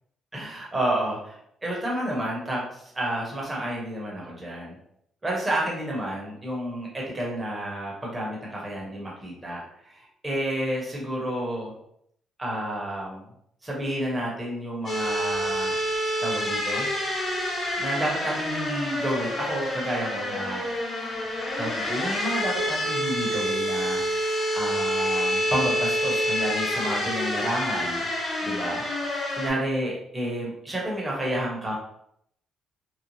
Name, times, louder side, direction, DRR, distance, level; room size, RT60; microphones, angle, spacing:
voice 1, 0.3-1.4 1.6-4.8 5.2-11.7 12.4-13.3 13.6-15.8 16.2-16.9 17.8-20.6 21.6-28.1 28.4-31.8, right 1 dB, 20° right, -4 dB, 1.0 m, -30 dB
sound 1, 14.8-29.5, equal, 55° left, 1.1 m, -28 dB
3.1 x 2.0 x 2.7 m, 0.72 s
cardioid pair, 90°, 0 cm